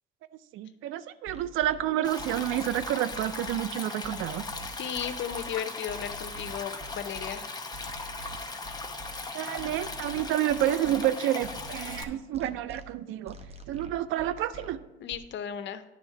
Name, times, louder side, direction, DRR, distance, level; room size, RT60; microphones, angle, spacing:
voice 1, 0.5-4.5 9.3-13.4 13.7-14.8, right 12 dB, 90° right, 14 dB, 0.4 m, -29 dB
sound 1, 1.3-1.8 2.2-3.6 4.0-5.4 5.9-7.3 7.7-9.1 9.6-11.0 11.4-12.8 13.3-14.7 15.1-15.2, right 1 dB, 30° right, 0.9 m, -45 dB
Stream, 2.0-12.0, left 3 dB, 20° left, 0.8 m, -38 dB
voice 2, 4.8-7.4 15.0-15.8, left 9 dB, 65° left, 11 dB, 0.6 m, -35 dB
9.5 x 3.5 x 5.6 m, 1.1 s
cardioid pair, 90°, 20 cm